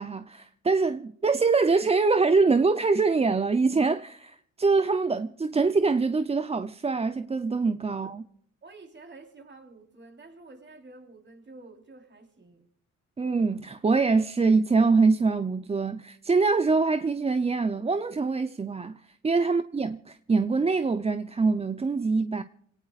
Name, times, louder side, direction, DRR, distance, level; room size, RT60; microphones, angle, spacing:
voice 1, 0.0-8.2 13.2-18.9 19.2-22.4, right 4 dB, 20° right, 0.6 m, -24 dB
voice 2, 8.6-12.6 19.4-19.5, right 3 dB, 35° right, 4.1 m, -49 dB
26.5 x 18.0 x 2.5 m
cardioid pair, 90°, 30 cm